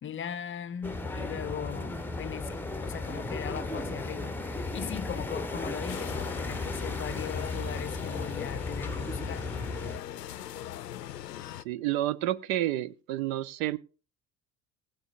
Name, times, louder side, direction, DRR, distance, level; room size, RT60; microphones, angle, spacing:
voice 1, 0.0-9.5, left 8 dB, 25° left, 0.7 m, -39 dB
sound 1, 0.8-10.0, left 2 dB, 5° left, 1.0 m, -35 dB
sound 2, 5.9-11.6, left 12 dB, 80° left, 0.6 m, -40 dB
voice 2, 11.6-13.8, right 14 dB, 55° right, 0.7 m, -30 dB
20.0 x 7.8 x 2.5 m
figure-of-eight pair, 60°, 48 cm